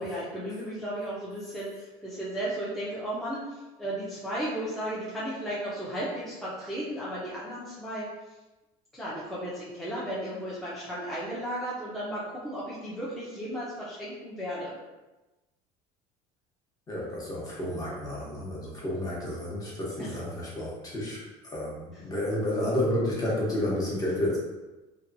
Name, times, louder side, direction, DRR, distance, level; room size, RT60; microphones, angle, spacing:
voice 1, 0.0-8.1 8.9-14.7 20.0-20.1, right 1 dB, ahead, -9 dB, 0.5 m, -34 dB
voice 2, 16.9-24.4, left 1 dB, 25° left, -5 dB, 0.9 m, -31 dB
2.8 x 2.2 x 2.5 m, 1.1 s
cardioid pair, 135°, 15 cm